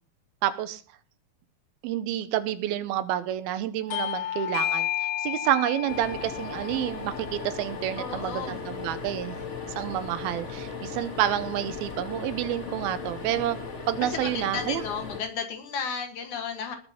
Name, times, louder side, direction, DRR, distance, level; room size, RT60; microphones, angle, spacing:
voice 1, 0.4-0.8 1.8-4.9 5.2-9.4 9.8-13.6 13.9-14.8, right 12 dB, 80° right, 13 dB, 2.7 m, -29 dB
Bell / Doorbell, 3.9-9.0, left 12 dB, 85° left, 3.2 m, -33 dB
sound 1, 5.9-15.2, left 4 dB, 30° left, 1.5 m, -37 dB
voice 2, 8.0-8.6 14.0-16.8, left 6 dB, 60° left, 6 dB, 2.9 m, -33 dB
19.5 x 6.7 x 5.8 m, 0.41 s
omnidirectional pair, 4.4 m